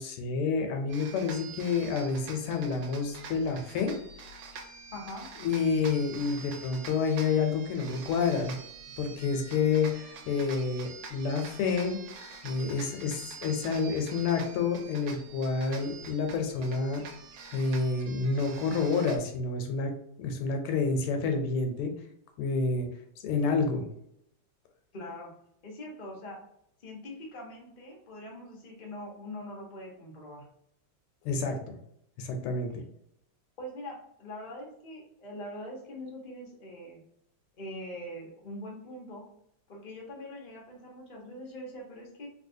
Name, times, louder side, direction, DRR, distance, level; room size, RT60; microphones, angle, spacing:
voice 1, 0.0-4.0 5.4-8.6 9.0-12.0 12.4-17.0 17.5-19.9 20.2-21.9 22.4-22.9 23.2-23.9 31.2-31.6 32.2-32.8, left 4 dB, 85° left, 5 dB, 1.5 m, -29 dB
sound 1, 0.9-19.2, right 5 dB, 75° right, 1.3 m, -46 dB
voice 2, 4.9-5.3 24.9-25.3 25.6-26.4 26.8-30.4 33.6-37.0 37.6-39.3 39.7-42.3, left 1 dB, 65° left, -2 dB, 0.4 m, -43 dB
3.3 x 2.8 x 2.6 m, 0.75 s
omnidirectional pair, 2.4 m